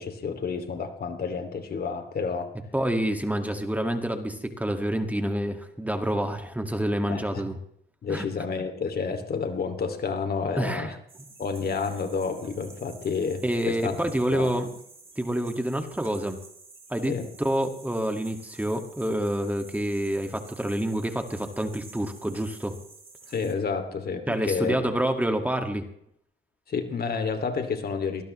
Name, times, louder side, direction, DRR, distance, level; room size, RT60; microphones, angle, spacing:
voice 1, 0.0-2.5 7.1-7.4 8.0-11.0 11.4-14.6 17.1-17.3 23.3-24.8 26.7-28.2, left 5 dB, 50° left, 7 dB, 2.6 m, -30 dB
voice 2, 2.7-7.6 8.1-8.3 10.6-10.9 13.4-14.7 15.2-16.4 16.9-17.1 17.4-22.8 24.3-25.9, right 1 dB, 10° right, 5 dB, 2.0 m, -27 dB
sound 1, 11.1-23.5, right 3 dB, 30° right, 3.8 m, -50 dB
23.0 x 19.0 x 3.2 m, 0.70 s
cardioid pair, 90°, 20 cm